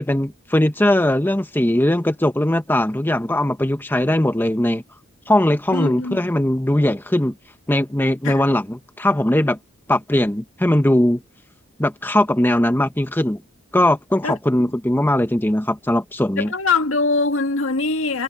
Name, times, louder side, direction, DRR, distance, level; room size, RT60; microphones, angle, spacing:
voice 1, 0.0-4.8 5.3-7.3 7.7-9.6 9.9-11.2 11.8-13.4 13.7-16.5, left 1 dB, 10° left, 0.9 m, -19 dB
voice 2, 5.7-6.3 8.2-8.5 14.2-14.4 16.4-18.2, left 3 dB, 70° left, 2.2 m, -22 dB
head